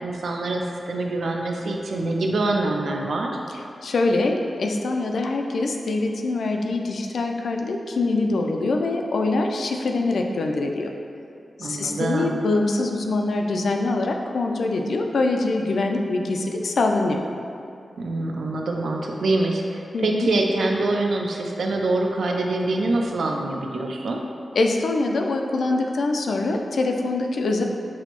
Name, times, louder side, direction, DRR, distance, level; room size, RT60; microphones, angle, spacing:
voice 1, 0.0-3.3 11.6-12.4 18.0-24.2, right 2 dB, 85° right, 1 dB, 0.4 m, -25 dB
voice 2, 3.8-10.9 11.6-17.2 19.9-20.3 24.6-27.6, left 2 dB, 80° left, 3 dB, 0.3 m, -24 dB
6.0 x 2.0 x 2.9 m, 2.5 s
wide cardioid pair, 125°, 0 cm